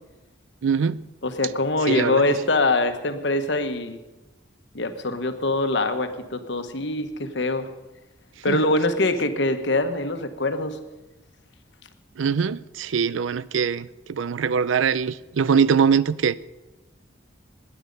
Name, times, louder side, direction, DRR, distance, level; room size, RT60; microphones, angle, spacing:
voice 1, 0.6-1.0 1.9-2.2 8.5-8.6 12.2-16.4, right 6 dB, 90° right, 0.4 m, -22 dB
voice 2, 1.2-4.0 4.7-7.7 8.4-10.8, left 2 dB, 70° left, 1.1 m, -23 dB
19.0 x 9.9 x 5.3 m
head